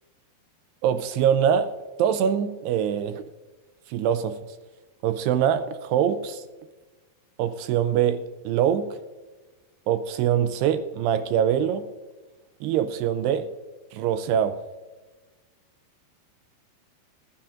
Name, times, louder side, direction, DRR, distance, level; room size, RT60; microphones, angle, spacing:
voice 1, 0.8-1.7 2.0-3.2 3.9-4.4 5.0-6.4 7.4-9.0 9.9-11.9 12.6-13.5 13.9-14.6, right 9 dB, 85° right, 11 dB, 2.5 m, -23 dB
21.5 x 10.0 x 2.5 m, 1.3 s
omnidirectional pair, 5.0 m